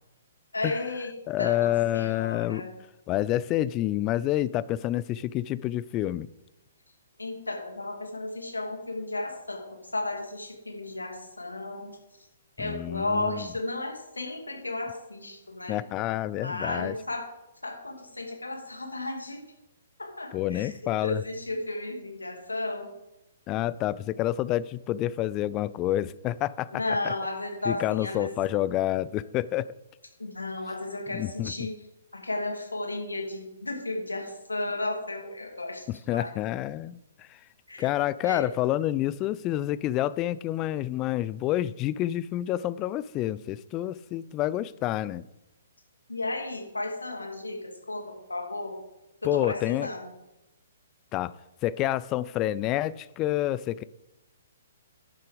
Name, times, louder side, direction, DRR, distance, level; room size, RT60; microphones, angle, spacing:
voice 1, 0.5-1.1 1.4-2.7 7.2-9.6 9.9-11.9 12.6-15.8 16.4-17.2 17.6-19.4 20.2-20.7 21.0-22.9 26.7-28.3 30.2-31.7 32.1-35.8 36.1-36.3 37.7-37.9 38.2-38.5 46.1-48.8 49.2-50.1, left 2 dB, 75° left, 2.5 m, -33 dB
voice 2, 1.3-2.6 3.1-6.3 12.6-13.5 15.7-16.9 20.3-21.2 23.5-26.7 27.0-27.1 27.7-29.7 31.1-31.7 35.9-37.3 37.8-45.2 49.2-49.9 51.1-51.3 51.6-53.8, left 14 dB, 25° left, 0.3 m, -28 dB
10.5 x 6.7 x 5.1 m
figure-of-eight pair, 125°, 0 cm